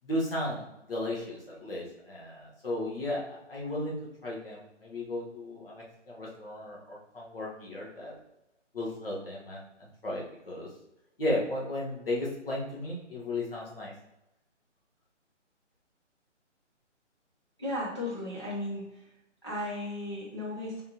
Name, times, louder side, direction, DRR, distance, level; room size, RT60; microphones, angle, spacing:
voice 1, 0.0-3.9 4.2-8.1 8.7-10.7 11.2-13.9, left 1 dB, 50° left, -4 dB, 1.4 m, -35 dB
voice 2, 17.6-19.1 19.4-20.8, left 1 dB, 25° left, -7 dB, 0.7 m, -35 dB
4.2 x 3.7 x 2.8 m, 0.92 s
hypercardioid pair, 180°, 37 cm